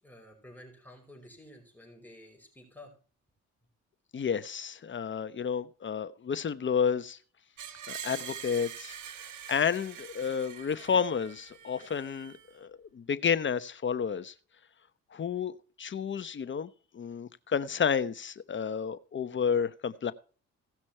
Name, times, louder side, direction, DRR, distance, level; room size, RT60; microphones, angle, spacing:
voice 1, 0.0-2.9, left 1 dB, 5° left, 0 dB, 5.2 m, -51 dB
voice 2, 4.1-7.2 7.9-8.9 9.5-14.3 15.1-16.7 16.9-20.1, left 7 dB, 40° left, 14 dB, 1.0 m, -31 dB
Screech, 7.6-12.5, right 9 dB, 80° right, 1.7 m, -44 dB
17.5 x 6.1 x 4.4 m, 0.40 s
cardioid pair, 90°, 30 cm